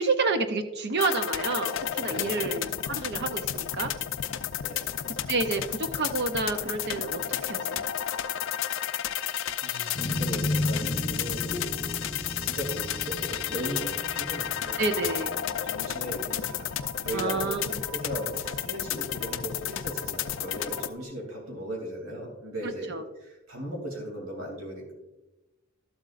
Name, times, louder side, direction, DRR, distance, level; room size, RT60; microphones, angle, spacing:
voice 1, 0.0-3.9 5.3-7.8 14.8-15.3 17.1-17.8 22.6-23.0, right 3 dB, 50° right, 8 dB, 0.6 m, -29 dB
sound 1, 1.0-20.9, left 10 dB, 60° left, 0.4 m, -32 dB
voice 2, 2.0-2.5 4.6-5.3 9.6-11.5 12.4-14.9 15.6-17.6 17.9-22.9 23.2-24.9, right 1 dB, 80° right, -1 dB, 2.7 m, -37 dB
sound 2, 9.9-16.5, left 1 dB, 35° left, 0.8 m, -34 dB
sound 3, 15.7-21.0, right 6 dB, 20° right, 3.4 m, -52 dB
12.5 x 7.8 x 2.5 m, 1.0 s
head